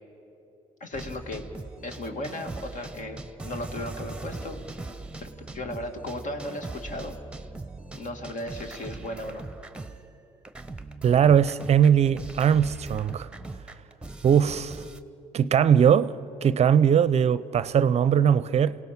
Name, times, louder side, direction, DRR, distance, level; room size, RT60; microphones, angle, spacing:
voice 1, 0.8-1.4 1.8-4.6 5.2-7.1 7.9-9.5, left 1 dB, 55° left, 2.3 m, -36 dB
sound 1, 0.9-10.2 10.4-15.0, right 3 dB, 5° right, 1.0 m, -40 dB
voice 2, 11.0-13.3 14.2-14.8 15.3-16.2 16.4-18.8, right 8 dB, 45° right, 0.6 m, -20 dB
28.5 x 17.5 x 6.1 m
supercardioid pair, 70°, 16 cm